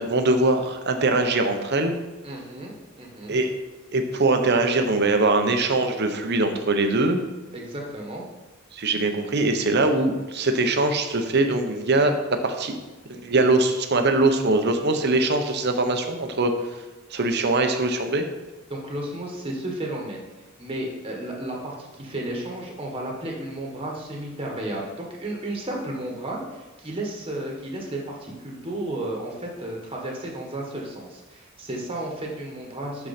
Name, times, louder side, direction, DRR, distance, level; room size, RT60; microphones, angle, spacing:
voice 1, 0.0-2.0 3.3-3.5 3.9-7.2 8.7-12.1 12.4-12.7 13.1-16.5 17.1-18.2, right 2 dB, 50° right, 6 dB, 0.8 m, -22 dB
voice 2, 2.2-3.4 7.5-8.2 18.7-20.2 20.6-33.1, right 1 dB, 25° right, -1 dB, 1.4 m, -33 dB
11.5 x 4.6 x 4.3 m, 1.1 s
head